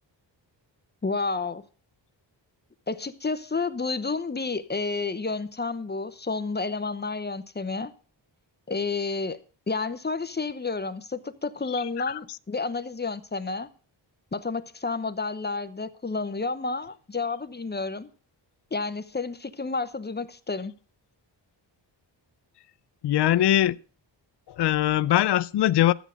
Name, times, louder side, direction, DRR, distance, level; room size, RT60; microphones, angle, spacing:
voice 1, 1.0-1.6 2.9-7.9 8.7-9.4 9.7-13.7 14.3-18.1 18.7-20.7, left 4 dB, 20° left, 0.9 m, -30 dB
voice 2, 11.7-12.2 23.0-23.8 24.5-25.9, left 13 dB, 65° left, 0.5 m, -22 dB
13.5 x 8.2 x 5.0 m
wide cardioid pair, 120°, 45 cm